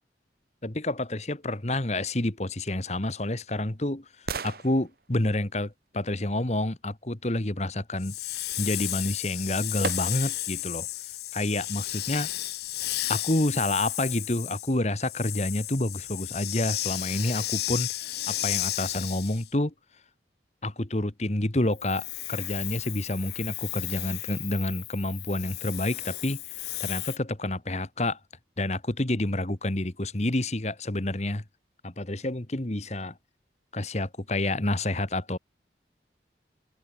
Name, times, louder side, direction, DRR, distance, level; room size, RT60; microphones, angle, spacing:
voice 1, 0.6-8.1 8.6-10.9 11.3-12.3 13.1-19.7 20.6-28.2 28.6-31.4 31.8-33.1 33.7-35.4, left 1 dB, 35° left, 1.5 m, -29 dB
sound 1, 2.8-6.8 8.9-9.0 9.8-10.5 11.0-11.1, right 4 dB, 55° right, 1.3 m, -40 dB
Hiss, 8.0-19.5 21.7-27.2, left 17 dB, 60° left, 0.5 m, -34 dB
open air
head